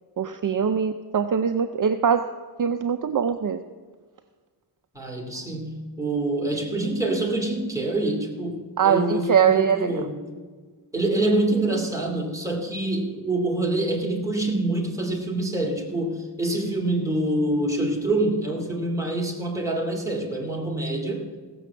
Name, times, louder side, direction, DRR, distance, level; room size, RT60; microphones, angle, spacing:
voice 1, 0.2-2.2 2.6-3.6 8.8-10.0, right 7 dB, 50° right, 9 dB, 0.5 m, -22 dB
voice 2, 4.9-10.2 10.9-21.3, right 2 dB, 5° right, -1 dB, 2.4 m, -26 dB
16.0 x 6.9 x 7.1 m, 1.5 s
wide cardioid pair, 140°, 43 cm